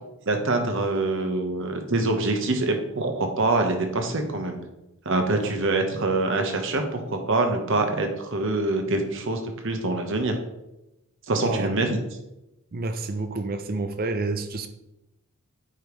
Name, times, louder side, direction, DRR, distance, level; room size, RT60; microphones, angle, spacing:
voice 1, 0.3-4.6 5.0-10.3 11.3-12.0, right 2 dB, 60° right, 4 dB, 1.1 m, -25 dB
voice 2, 12.7-14.7, right 3 dB, 40° right, 8 dB, 0.5 m, -29 dB
8.8 x 5.2 x 3.2 m, 0.91 s
head